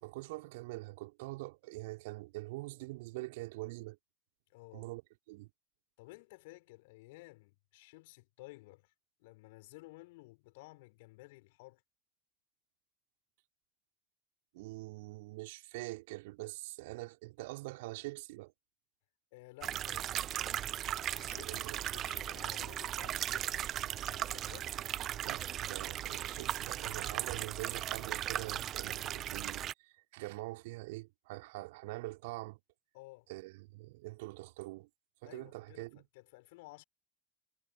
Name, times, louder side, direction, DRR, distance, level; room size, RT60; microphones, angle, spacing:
voice 1, 0.0-4.0 4.7-5.0 5.3-5.5 14.5-18.5 21.3-21.9 25.2-32.6 33.3-34.9 35.2-36.0, right 21 dB, 60° right, 2.8 m, -44 dB
voice 2, 4.5-4.9 6.0-8.9 9.2-11.8 19.3-20.2 20.9-23.6 24.1-24.7 32.9-33.3 35.2-36.8, left 23 dB, 60° left, 4.8 m, -54 dB
sound 1, 19.6-29.7, right 11 dB, 45° right, 0.4 m, -37 dB
figure-of-eight pair, 65°, 0 cm